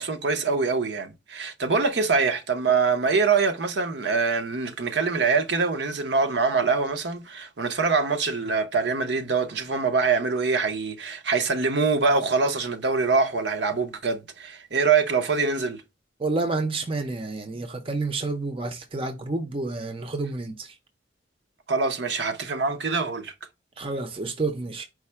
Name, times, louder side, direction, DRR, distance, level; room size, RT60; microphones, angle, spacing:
voice 1, 0.0-15.8 21.7-23.3, right 4 dB, 65° right, 0.7 m, -24 dB
voice 2, 16.2-20.7 23.8-24.8, right 3 dB, 30° right, 0.6 m, -29 dB
4.7 x 2.1 x 4.3 m
head